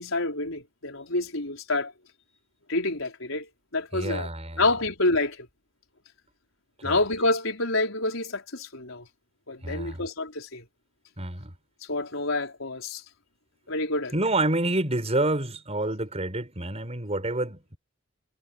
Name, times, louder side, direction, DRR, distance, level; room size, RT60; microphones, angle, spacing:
voice 1, 0.0-1.9 2.7-4.3 4.6-5.5 6.8-9.1 9.5-10.6 11.9-13.0 13.7-14.1, left 2 dB, 90° left, 4.8 m, -28 dB
voice 2, 3.9-4.6 6.8-7.0 9.6-10.0 11.2-11.5 14.1-17.8, right 2 dB, 35° right, 6.0 m, -28 dB
head